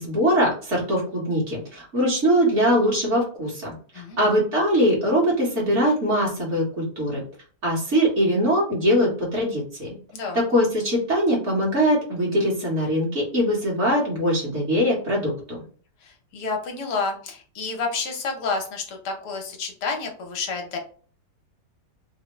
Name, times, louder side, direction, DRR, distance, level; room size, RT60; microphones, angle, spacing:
voice 1, 0.0-3.7 4.2-7.2 7.6-10.0 10.3-15.6, equal, 45° right, -4 dB, 1.6 m, -22 dB
voice 2, 3.9-4.3 10.1-10.4 16.0-20.8, left 4 dB, 75° left, 3 dB, 1.3 m, -30 dB
3.5 x 2.1 x 3.0 m, 0.43 s
omnidirectional pair, 1.8 m